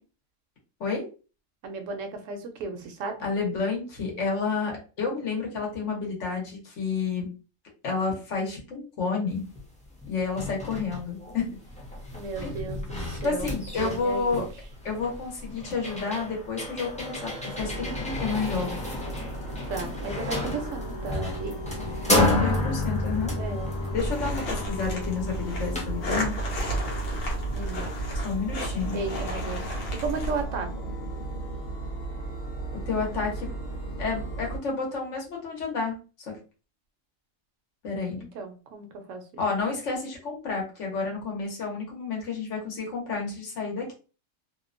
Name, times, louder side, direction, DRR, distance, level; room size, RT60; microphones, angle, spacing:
voice 1, 1.6-3.2 12.1-14.5 19.7-21.6 22.0-22.1 23.3-23.7 27.5-27.8 28.9-30.7 38.2-39.2, right 4 dB, 75° right, 6 dB, 0.9 m, -35 dB
voice 2, 3.2-7.3 7.8-9.4 10.1-11.6 12.4-12.5 13.2-14.4 14.8-18.7 22.1-23.3 23.9-26.3 28.2-29.0 32.9-33.5 34.0-35.9 36.3-36.4 37.8-38.2 39.4-43.9, left 4 dB, 70° left, 0 dB, 1.2 m, -30 dB
sound 1, 9.5-9.6 10.0-27.9, left 2 dB, 10° left, 0.3 m, -32 dB
sound 2, 17.6-34.6, right 1 dB, 40° left, 0.8 m, -36 dB
sound 3, 24.0-30.4, right 1 dB, 85° left, 1.2 m, -32 dB
2.8 x 2.1 x 2.4 m, 0.34 s
omnidirectional pair, 1.3 m